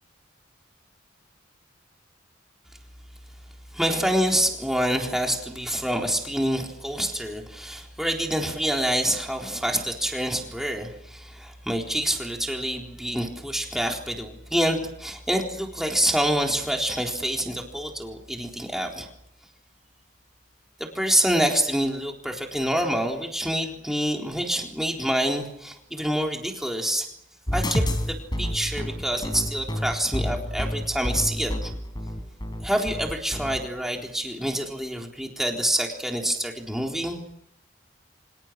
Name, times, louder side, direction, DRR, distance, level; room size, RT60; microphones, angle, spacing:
voice 1, 3.7-19.1 20.8-27.1 27.5-31.7 32.6-37.2, equal, ahead, 1 dB, 3.8 m, -27 dB
sound 1, 27.5-33.5, equal, 20° left, 4.1 m, -29 dB
29.5 x 26.0 x 6.5 m, 0.76 s
head